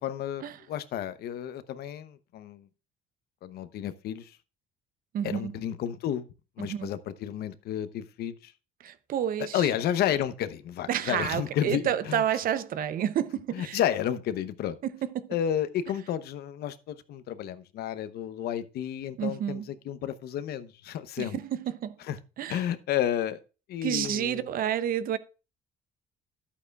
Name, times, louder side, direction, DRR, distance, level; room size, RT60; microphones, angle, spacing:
voice 1, 0.0-2.7 3.4-4.4 5.2-6.3 6.6-8.5 9.5-12.2 13.5-14.8 15.3-21.4 22.1-22.2 22.5-23.4 23.7-24.5, left 10 dB, 70° left, 0.8 m, -31 dB
voice 2, 5.1-5.6 6.7-6.9 8.8-9.7 10.9-13.8 14.8-15.3 19.2-19.6 21.2-22.0 22.4-22.6 23.8-25.2, right 10 dB, 60° right, 0.7 m, -30 dB
12.0 x 8.4 x 2.4 m
cardioid pair, 110°, 17 cm